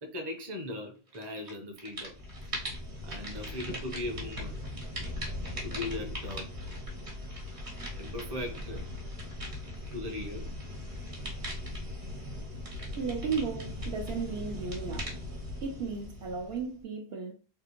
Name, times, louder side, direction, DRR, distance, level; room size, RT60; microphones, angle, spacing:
voice 1, 0.0-2.1 3.0-4.6 5.6-6.5 8.0-8.8 9.9-10.5, left 2 dB, 25° right, 0.7 m, -38 dB
sound 1, 1.1-1.5 1.8-16.8, left 1 dB, 55° right, 1.2 m, -39 dB
voice 2, 13.0-15.2 15.6-17.3, right 5 dB, 70° right, 0.9 m, -35 dB
3.5 x 2.5 x 2.9 m
omnidirectional pair, 1.1 m